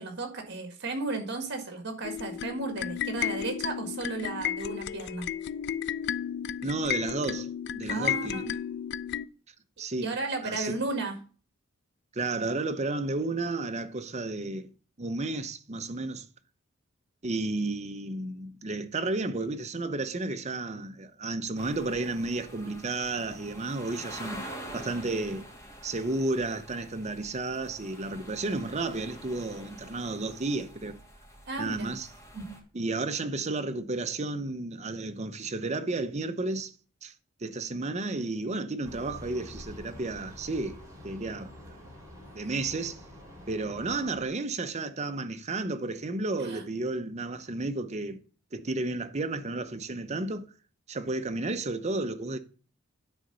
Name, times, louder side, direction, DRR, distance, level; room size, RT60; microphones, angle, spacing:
voice 1, 0.0-5.3 7.9-8.5 10.0-11.2 31.5-31.9 32.3-32.6 46.4-46.6, right 3 dB, 55° right, 1.9 m, -34 dB
sound 1, 2.0-9.3, left 9 dB, 55° left, 0.3 m, -33 dB
voice 2, 6.6-8.4 9.8-10.1 10.4-10.8 12.1-14.7 15.0-16.3 17.2-24.5 24.7-25.5 25.8-31.0 31.6-32.1 32.7-36.7 37.0-37.1 37.4-40.8 41.0-41.8 42.3-43.0 43.5-48.2 48.5-50.5 50.9-52.4, right 2 dB, 35° right, 0.7 m, -32 dB
sound 2, 21.6-32.6, equal, 15° left, 2.3 m, -46 dB
sound 3, 38.8-44.3, equal, 15° right, 2.7 m, -47 dB
9.7 x 3.9 x 6.8 m
head